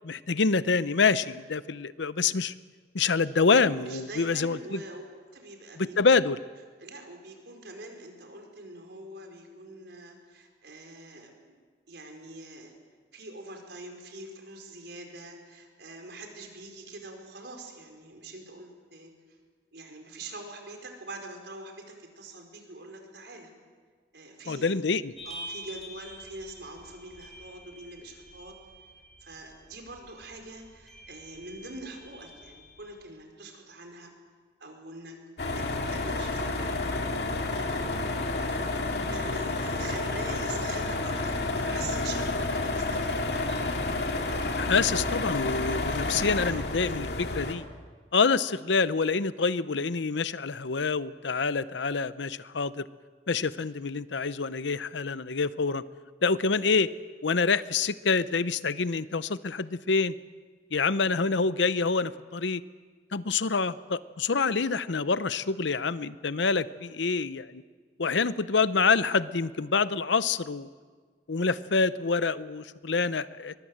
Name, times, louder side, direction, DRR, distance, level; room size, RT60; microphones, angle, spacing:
voice 1, 0.0-2.5 2.9-4.8 5.8-6.4 24.5-25.1 44.6-47.6 48.1-52.9 53.3-55.8 56.2-56.9 57.2-60.1 60.7-62.6 63.1-67.6 68.0-70.7 71.3-73.5, left 4 dB, 85° left, 15 dB, 0.8 m, -26 dB
voice 2, 3.8-5.0 5.3-5.9 6.8-11.6 11.9-12.7 13.1-19.1 19.7-23.5 24.1-24.8 25.2-28.6 29.2-34.1 34.6-36.7 37.6-43.6, right 2 dB, 70° right, 3 dB, 4.8 m, -44 dB
sound 1, 25.2-33.2, equal, ahead, 5.3 m, -47 dB
sound 2, 35.4-47.5, left 2 dB, 65° left, 2.4 m, -30 dB
22.5 x 22.5 x 7.9 m, 1.5 s
head